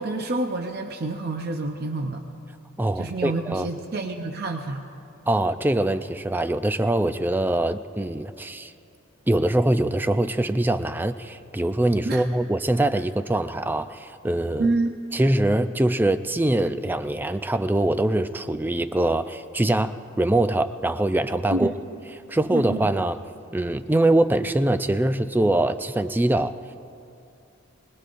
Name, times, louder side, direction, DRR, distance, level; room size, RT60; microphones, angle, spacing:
voice 1, 0.0-2.2 3.0-4.8 12.0-12.2 14.6-15.0 21.5-21.7 22.5-22.9, right 2 dB, 50° right, 4 dB, 0.7 m, -28 dB
voice 2, 2.8-3.7 5.3-8.7 9.3-14.7 15.1-21.7 22.3-23.2 23.5-26.6, right 1 dB, 10° right, 10 dB, 0.4 m, -23 dB
24.5 x 20.5 x 2.5 m, 2.6 s
head